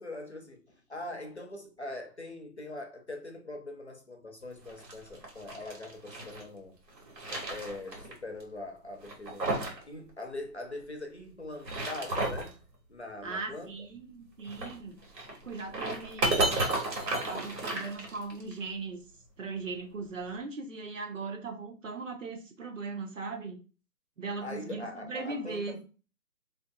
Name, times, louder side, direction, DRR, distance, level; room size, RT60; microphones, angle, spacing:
voice 1, 0.0-6.7 7.3-9.6 9.9-12.6 12.9-13.7 24.4-25.8, left 2 dB, 45° left, 0.5 m, -42 dB
sound 1, 4.6-6.4 6.9-8.1 8.4-8.5 9.0-9.8 10.1-10.2 11.4-12.5 14.4-18.5, right 2 dB, 85° right, 1.7 m, -33 dB
voice 2, 13.2-15.0 15.4-16.6 17.3-19.0 19.4-23.6 24.2-25.8, right 4 dB, 50° right, 0.7 m, -38 dB
3.5 x 2.6 x 2.2 m
hypercardioid pair, 170°, 49 cm